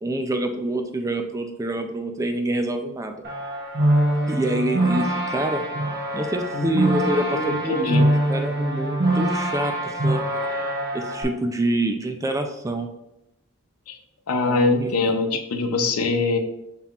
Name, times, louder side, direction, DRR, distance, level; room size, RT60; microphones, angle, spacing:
voice 1, 0.0-3.2 4.3-5.6 6.1-10.2 10.9-12.9 14.4-14.9, right 1 dB, 15° right, 6 dB, 0.3 m, -26 dB
sound 1, 3.2-11.2, right 1 dB, 45° right, 0.9 m, -24 dB
voice 2, 6.5-8.1 13.9-14.0 14.3-16.4, left 3 dB, 85° left, 6 dB, 0.6 m, -23 dB
5.6 x 3.6 x 2.4 m, 0.87 s
head